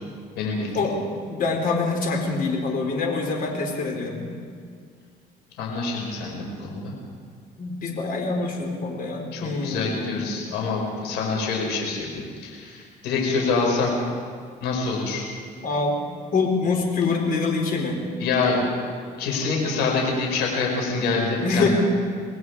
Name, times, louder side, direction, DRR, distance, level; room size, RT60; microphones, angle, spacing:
voice 1, 0.4-0.9 5.6-6.9 9.3-13.9 14.6-15.2 18.2-18.6 19.2-21.7, left 4 dB, 85° left, -1 dB, 6.0 m, -26 dB
voice 2, 1.3-4.3 7.6-10.3 15.6-16.0 16.3-18.0 21.4-21.7, left 4 dB, 55° left, 2 dB, 4.5 m, -25 dB
27.0 x 19.5 x 5.0 m, 2.1 s
cardioid pair, 110°, 17 cm